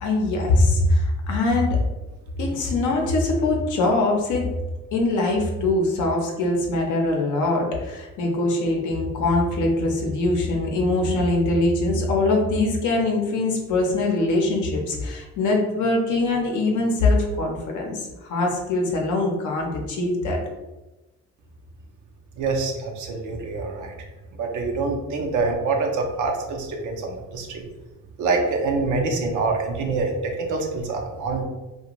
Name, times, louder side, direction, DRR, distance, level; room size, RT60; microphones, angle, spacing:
voice 1, 0.0-1.8 2.4-4.5 4.9-20.4, left 2 dB, 80° left, 0 dB, 0.6 m, -22 dB
voice 2, 22.4-23.9 24.4-27.6 28.2-31.4, right 3 dB, 80° right, 2 dB, 0.6 m, -25 dB
2.5 x 2.2 x 2.9 m, 1.1 s
cardioid pair, 90°, 30 cm